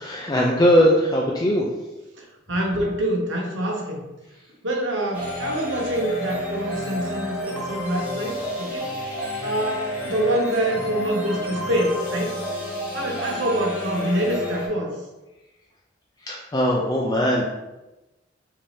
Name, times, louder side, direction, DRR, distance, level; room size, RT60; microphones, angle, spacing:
voice 1, 0.0-1.7 16.2-17.4, equal, 20° left, -3 dB, 0.4 m, -20 dB
voice 2, 2.2-4.0 4.6-9.1 9.4-12.3 12.9-14.9, right 1 dB, 80° right, 0 dB, 1.0 m, -26 dB
sound 1, 5.1-14.7, equal, 10° right, 1.3 m, -30 dB
5.3 x 2.8 x 3.3 m, 1.0 s
head